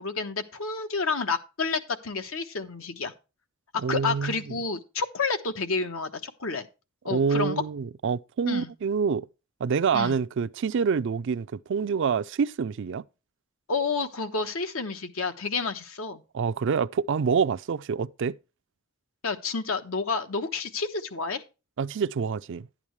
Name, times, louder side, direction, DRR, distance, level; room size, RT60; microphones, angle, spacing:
voice 1, 0.0-3.1 3.7-6.7 7.0-7.6 8.5-8.7 9.9-10.2 13.7-16.2 19.2-21.4, left 4 dB, 75° left, 1.2 m, -30 dB
voice 2, 3.8-4.4 7.1-9.3 9.6-13.0 16.3-18.4 21.8-22.7, right 6 dB, 60° right, 0.4 m, -26 dB
11.5 x 8.7 x 3.2 m
head